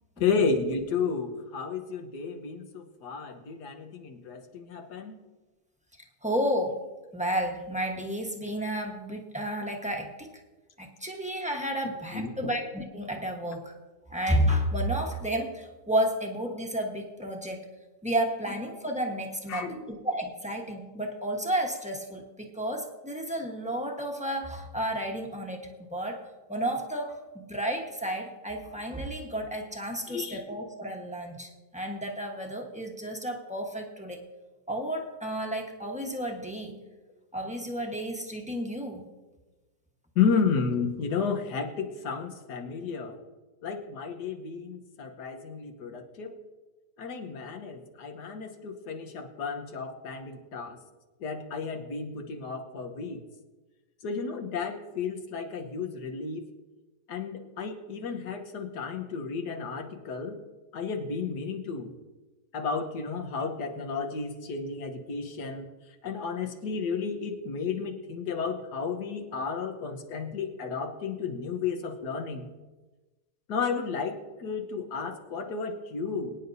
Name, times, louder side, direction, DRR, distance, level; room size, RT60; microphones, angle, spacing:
voice 1, 0.2-5.2 12.1-12.5 19.5-19.9 30.1-30.4 40.1-43.2 43.6-46.4 47.0-50.8 51.2-53.2 54.0-56.5 57.1-60.4 60.7-61.9 62.5-65.7 66.0-72.5 73.5-76.4, left 5 dB, 85° left, 5 dB, 1.7 m, -32 dB
voice 2, 6.2-6.8 7.1-10.4 10.8-13.7 14.1-17.7 18.0-26.2 26.5-34.2 34.7-36.8 37.3-39.1, right 1 dB, 5° right, 1 dB, 1.0 m, -31 dB
23.0 x 9.6 x 2.7 m, 1.2 s
omnidirectional pair, 1.7 m